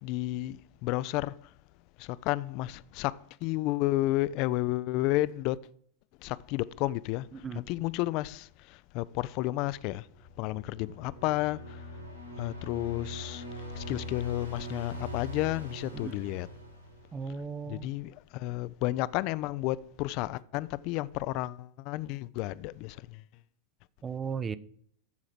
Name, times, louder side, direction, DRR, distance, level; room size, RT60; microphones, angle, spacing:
voice 1, 0.0-1.3 2.0-5.6 6.2-7.3 7.5-10.1 10.4-11.8 12.4-13.4 13.7-16.5 17.7-23.2, left 17 dB, 45° left, 0.4 m, -32 dB
sound 1, 10.1-17.5, left 1 dB, 85° right, 1.7 m, -42 dB
voice 2, 17.1-17.9 24.0-24.6, right 6 dB, 20° right, 0.5 m, -35 dB
13.0 x 4.8 x 5.9 m
figure-of-eight pair, 90°, 0 cm